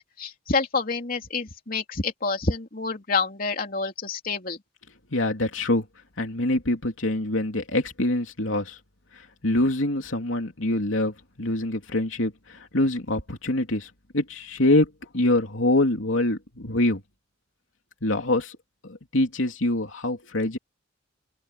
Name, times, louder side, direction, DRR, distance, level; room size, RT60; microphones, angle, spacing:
voice 1, 0.0-4.6, left 4 dB, 45° left, 3.0 m, -28 dB
voice 2, 5.1-5.9 6.2-8.8 9.4-17.0 18.0-18.6 18.8-20.6, left 1 dB, 85° left, 3.0 m, -25 dB
open air
head